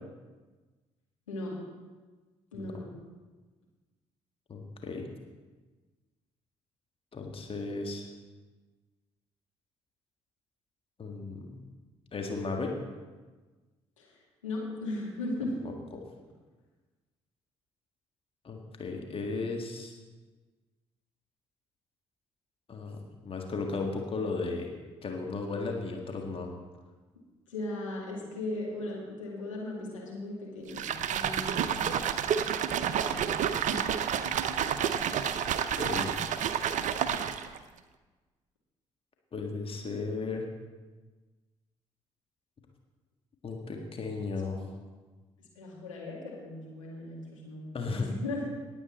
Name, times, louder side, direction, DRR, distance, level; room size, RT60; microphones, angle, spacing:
voice 1, 2.5-2.9 14.0-15.5 27.5-31.9 32.9-33.3 33.7-34.1 45.6-47.6 47.9-48.5, left 2 dB, 80° left, -4 dB, 2.0 m, -38 dB
voice 2, 4.5-5.1 7.1-8.1 11.0-11.6 12.1-12.8 15.6-16.0 18.4-19.9 22.7-24.7 25.0-26.5 35.7-36.2 39.3-40.5 43.4-44.6 47.7-48.1, left 3 dB, 35° left, 2 dB, 1.7 m, -35 dB
sound 1, 30.7-37.6, right 8 dB, 50° right, 0.7 m, -30 dB
18.5 x 7.9 x 4.3 m, 1.3 s
figure-of-eight pair, 45°, 16 cm